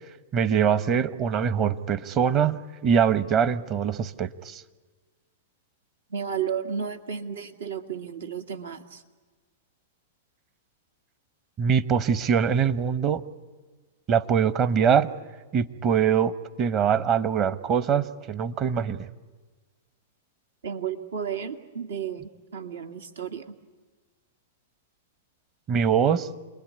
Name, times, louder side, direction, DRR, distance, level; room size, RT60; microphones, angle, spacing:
voice 1, 0.3-4.6 11.6-13.2 14.1-15.1 15.5-19.1 25.7-26.3, right 7 dB, 35° right, 14 dB, 1.1 m, -23 dB
voice 2, 6.1-9.0 20.6-23.6, right 7 dB, 80° right, 7 dB, 2.0 m, -33 dB
28.5 x 21.0 x 9.6 m, 1.3 s
hypercardioid pair, 120°, 0 cm